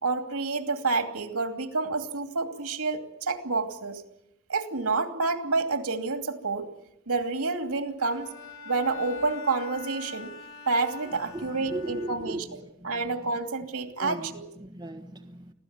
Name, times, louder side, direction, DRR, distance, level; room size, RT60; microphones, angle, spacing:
voice 1, 0.0-4.0 4.5-6.7 7.1-8.3 8.6-10.3 10.7-12.5 12.8-14.5, right 3 dB, 85° right, 6 dB, 2.7 m, -29 dB
Bowed string instrument, 8.0-12.6, left 4 dB, 60° left, 3.5 m, -43 dB
voice 2, 11.3-13.2 14.0-15.5, right 1 dB, 20° right, 3 dB, 1.5 m, -38 dB
25.5 x 16.5 x 9.6 m, 0.88 s
head